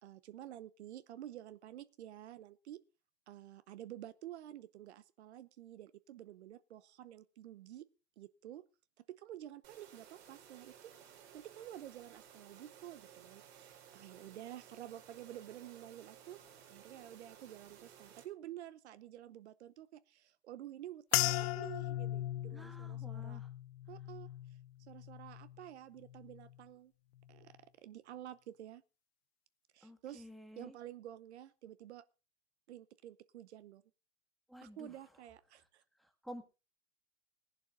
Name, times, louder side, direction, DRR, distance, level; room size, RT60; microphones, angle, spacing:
voice 1, 0.0-2.8 3.3-7.9 8.2-8.6 9.1-10.9 11.3-16.4 16.7-23.4 23.9-24.3 24.8-26.9 27.3-28.8 29.7-30.3 30.6-32.1 32.7-33.8 34.6-35.8, right 12 dB, 90° right, 16 dB, 0.9 m, -50 dB
sound 1, 9.6-18.2, right 9 dB, 70° right, 4.1 m, -58 dB
sound 2, 21.1-25.7 26.0-26.6 27.2-27.5, left 15 dB, 70° left, 0.7 m, -38 dB
voice 2, 22.5-23.5 29.8-30.7 34.5-34.9 36.0-36.4, equal, ahead, 5 dB, 1.9 m, -51 dB
17.5 x 11.0 x 3.8 m, 0.31 s
hypercardioid pair, 120°, 32 cm